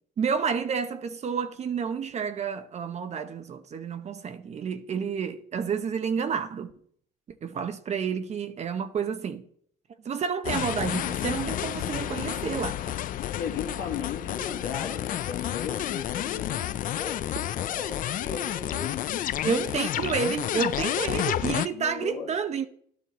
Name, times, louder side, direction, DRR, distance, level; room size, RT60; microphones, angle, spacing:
voice 1, 0.2-6.7 7.4-9.5 10.0-13.0 13.8-13.9 19.4-22.7, right 6 dB, 40° right, 0.8 m, -30 dB
sound 1, 10.4-21.7, left 12 dB, 55° left, 0.5 m, -30 dB
voice 2, 13.3-19.3 20.0-20.2 21.1-21.3 21.7-22.3, left 7 dB, 90° left, 1.8 m, -36 dB
11.5 x 8.6 x 4.1 m
cardioid pair, 110°, 17 cm